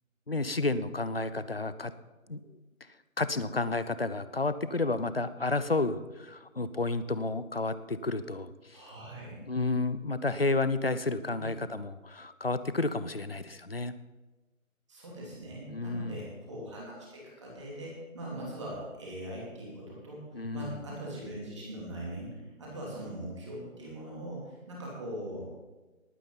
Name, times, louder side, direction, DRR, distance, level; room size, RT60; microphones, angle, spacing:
voice 1, 0.3-1.9 2.3-2.4 3.2-8.8 9.4-13.9 15.7-16.2 20.3-20.8, left 3 dB, 45° left, 13 dB, 0.6 m, -31 dB
voice 2, 8.7-9.4 11.3-11.5 14.9-25.4, right 1 dB, 20° right, -4 dB, 2.9 m, -41 dB
19.0 x 9.3 x 4.0 m, 1.2 s
figure-of-eight pair, 170°, 42 cm